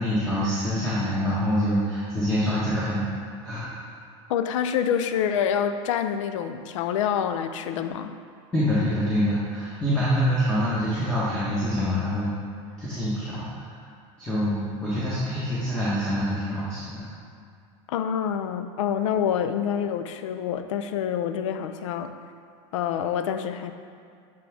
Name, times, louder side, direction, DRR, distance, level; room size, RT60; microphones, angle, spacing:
voice 1, 0.0-3.0 3.4-3.8 8.5-12.3 12.8-13.7 14.2-17.0, equal, 5° left, -10 dB, 1.5 m, -25 dB
voice 2, 4.3-8.1 17.9-22.1 22.7-23.7, left 8 dB, 80° left, 9 dB, 0.5 m, -27 dB
8.8 x 3.8 x 3.7 m, 2.3 s
supercardioid pair, 105°, 16 cm